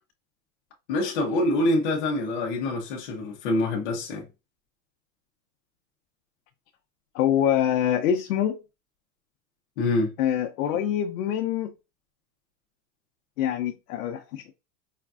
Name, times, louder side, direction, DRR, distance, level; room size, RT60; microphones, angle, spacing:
voice 1, 0.9-4.3 9.8-10.1, left 2 dB, 30° left, 0.6 m, -25 dB
voice 2, 7.1-8.6 10.2-11.7 13.4-14.4, left 10 dB, 70° left, 0.6 m, -25 dB
5.1 x 2.4 x 2.3 m
supercardioid pair, 175°, 46 cm